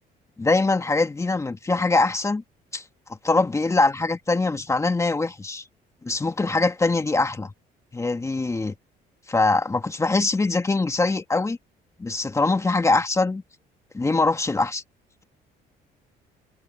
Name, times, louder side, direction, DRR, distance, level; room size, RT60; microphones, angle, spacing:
voice 1, 0.4-2.4 2.7-2.8 3.2-5.6 6.0-7.5 7.9-8.8 9.3-11.6 12.0-13.4 13.9-14.8, left 3 dB, 15° left, 1.9 m, -23 dB
cardioid pair, 110°, 17 cm